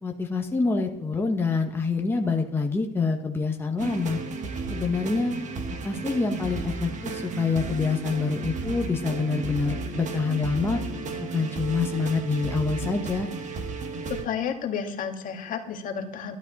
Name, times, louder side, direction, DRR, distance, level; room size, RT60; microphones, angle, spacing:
voice 1, 0.0-4.2 4.7-5.3 5.8-10.8 11.3-13.3, left 4 dB, 15° left, 2 dB, 1.1 m, -26 dB
sound 1, 3.8-14.2, right 3 dB, 45° right, 1.7 m, -33 dB
voice 2, 14.1-16.3, left 7 dB, 50° left, 4 dB, 1.8 m, -31 dB
12.0 x 11.5 x 4.1 m, 0.79 s
supercardioid pair, 105°, 18 cm